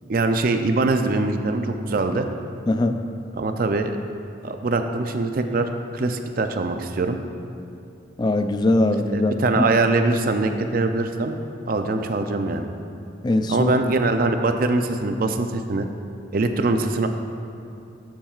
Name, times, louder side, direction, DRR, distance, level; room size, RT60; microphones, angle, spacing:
voice 1, 0.1-2.3 3.4-3.9 4.4-7.2 9.1-11.4 11.7-12.7 13.5-15.9 16.3-17.1, right 3 dB, 50° right, 6 dB, 0.4 m, -23 dB
voice 2, 2.7-3.0 8.2-9.6 13.2-13.8, left 2 dB, 20° left, 7 dB, 0.3 m, -21 dB
12.5 x 7.2 x 2.4 m, 2.7 s
head